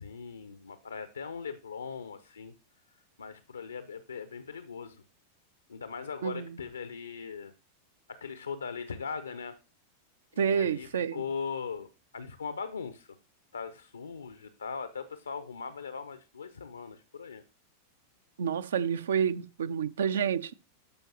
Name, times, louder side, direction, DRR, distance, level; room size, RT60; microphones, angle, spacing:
voice 1, 0.0-2.5 3.2-5.0 5.7-7.5 8.1-9.6 10.3-13.2 13.5-17.4, left 5 dB, 75° left, 0.5 m, -40 dB
voice 2, 10.4-11.2 18.4-20.5, right 7 dB, 65° right, 0.5 m, -29 dB
13.5 x 5.1 x 2.9 m
figure-of-eight pair, 90°, 0 cm